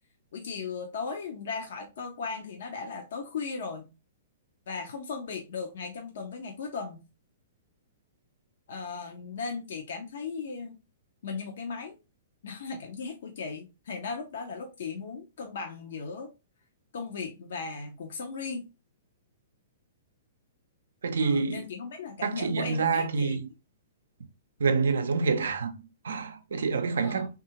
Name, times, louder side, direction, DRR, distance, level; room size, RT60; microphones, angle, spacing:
voice 1, 0.3-3.9 4.7-7.0 8.7-10.7 11.2-11.9 12.4-16.3 16.9-18.6 21.2-23.4 27.0-27.3, left 5 dB, 65° left, 0.5 m, -37 dB
voice 2, 21.0-21.6 22.2-23.5 24.6-27.3, right 4 dB, 75° right, 0.4 m, -27 dB
2.7 x 2.3 x 2.8 m
hypercardioid pair, 120°, 0 cm